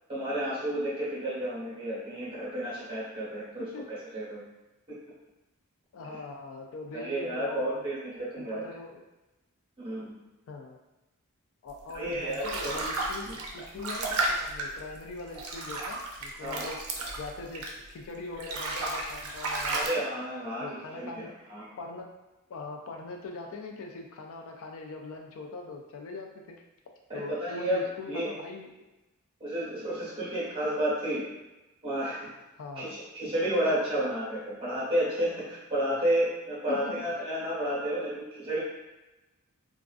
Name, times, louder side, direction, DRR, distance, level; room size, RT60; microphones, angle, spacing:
voice 1, 0.1-4.4 6.9-8.6 9.8-10.1 11.9-12.7 13.3-13.4 16.4-16.7 19.7-21.1 21.5-21.7 27.1-27.8 28.1-28.3 29.4-31.3 31.8-32.3 32.8-38.6, right 1 dB, 25° right, -7 dB, 1.0 m, -31 dB
voice 2, 5.9-7.8 8.4-9.0 10.5-10.8 11.6-16.8 17.2-20.0 20.6-21.3 21.8-22.1 22.5-26.6 27.1-28.7 32.6-33.0 35.9-36.0 36.7-37.0, left 3 dB, 65° left, 2 dB, 0.3 m, -41 dB
sound 1, 11.9-18.0 18.3-19.9, right 2 dB, 80° right, 0.4 m, -33 dB
2.3 x 2.3 x 2.4 m, 1.0 s
head